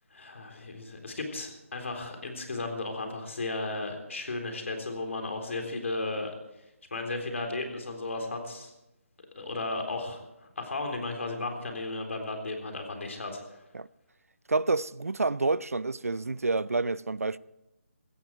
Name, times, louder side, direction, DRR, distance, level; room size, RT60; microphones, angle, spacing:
voice 1, 0.1-6.3 6.9-8.7 9.4-13.6, left 2 dB, 65° left, 3.7 m, -35 dB
voice 2, 14.5-17.4, right 3 dB, 85° right, 0.5 m, -28 dB
16.5 x 14.5 x 4.8 m
figure-of-eight pair, 155°, 8 cm